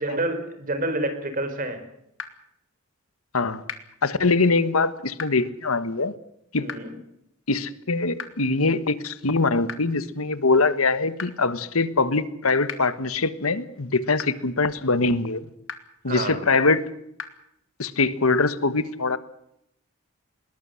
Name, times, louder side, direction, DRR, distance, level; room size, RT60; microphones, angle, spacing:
voice 1, 0.0-1.8 6.6-7.0 16.1-16.4, right 2 dB, 40° right, 4.3 m, -28 dB
sound 1, 2.2-2.3 3.7-3.8 5.2-5.3 6.7-6.8 8.2-8.3 9.7-9.8 11.2-11.3 12.7-12.8 14.2-14.3 15.7-15.8 17.2-17.3, left 6 dB, 65° left, 2.6 m, -33 dB
voice 2, 4.0-6.1 6.5-6.7 7.5-15.4 16.0-16.8 17.8-19.2, left 3 dB, 85° left, 1.5 m, -23 dB
21.0 x 19.0 x 7.7 m
head